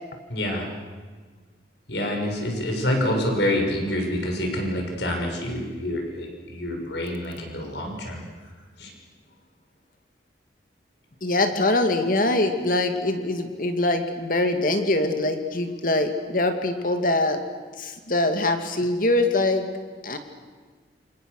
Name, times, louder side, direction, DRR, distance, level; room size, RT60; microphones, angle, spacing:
voice 1, 0.3-0.7 1.9-8.2 8.8-8.9, left 1 dB, 70° left, 2 dB, 6.3 m, -27 dB
voice 2, 11.2-17.4 17.8-19.7 20.0-20.2, left 2 dB, 50° left, 6 dB, 2.4 m, -23 dB
28.5 x 26.5 x 6.6 m, 1.5 s
head